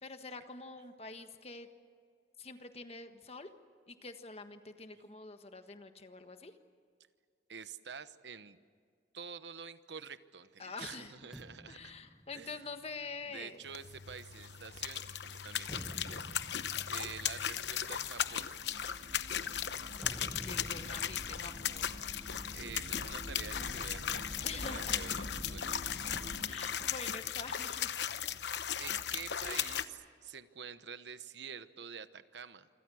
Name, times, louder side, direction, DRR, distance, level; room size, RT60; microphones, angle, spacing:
voice 1, 0.0-1.7 2.4-3.5 3.9-6.5 10.6-11.1 11.7-13.6 19.4-22.0 24.4-25.0 26.4-27.9 29.4-29.8, left 4 dB, 35° left, 7 dB, 1.5 m, -46 dB
voice 2, 7.5-8.6 9.1-11.9 12.3-12.6 13.3-16.6 16.9-18.6 22.5-25.8 28.8-32.7, right 6 dB, 85° right, 12 dB, 1.1 m, -48 dB
sound 1, 11.3-14.9 15.4-22.9 23.1-23.3 23.7-25.3 26.1-27.9, equal, ahead, 1.2 m, -52 dB
sound 2, 13.6-29.8, left 9 dB, 80° left, 0.9 m, -37 dB
sound 3, 15.2-26.4, equal, 40° right, 7.3 m, -48 dB
27.5 x 26.0 x 6.4 m, 2.1 s
head